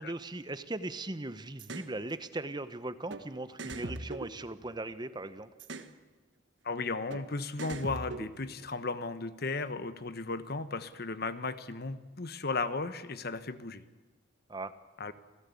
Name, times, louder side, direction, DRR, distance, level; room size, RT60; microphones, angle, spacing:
voice 1, 0.0-5.5 14.5-14.7, right 2 dB, 25° right, 12 dB, 0.9 m, -39 dB
sound 1, 1.6-1.9 3.1-3.2 3.6-5.0 5.6-5.9 7.1-7.2 7.6-8.7, right 2 dB, 65° right, 1.4 m, -41 dB
voice 2, 6.6-13.8 15.0-15.1, left 3 dB, 55° left, 12 dB, 1.2 m, -35 dB
28.0 x 17.0 x 8.5 m, 1.2 s
head